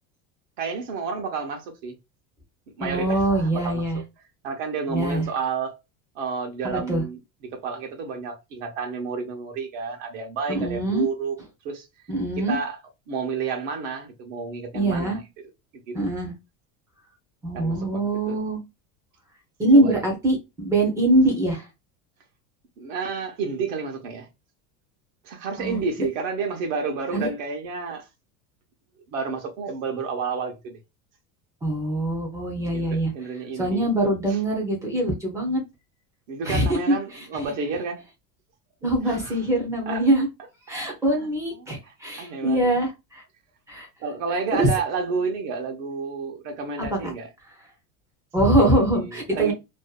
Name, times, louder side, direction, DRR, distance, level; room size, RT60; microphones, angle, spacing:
voice 1, 0.6-2.0 2.8-4.0 4.4-5.8 6.1-11.3 11.6-11.9 12.4-12.8 13.1-15.2 15.8-15.9 17.5-18.4 19.7-20.0 22.8-24.3 25.2-28.1 29.1-30.8 32.6-33.9 34.3-34.4 36.3-38.0 39.0-39.3 39.9-40.0 40.9-41.3 41.6-42.8 44.0-47.3 48.6-49.5, right 5 dB, 65° right, 0.8 m, -31 dB
voice 2, 2.8-4.0 4.9-5.3 6.6-7.0 10.5-11.1 12.1-12.6 14.7-15.2 15.9-16.3 17.4-18.6 19.6-21.7 25.6-25.8 27.1-27.3 31.6-33.1 33.5-35.6 36.4-37.4 38.8-40.3 40.7-43.2 43.7-43.9 44.5-44.7 46.8-47.1 48.3-49.5, right 1 dB, 10° right, 0.4 m, -23 dB
2.6 x 2.1 x 2.3 m
cardioid pair, 180°, 41 cm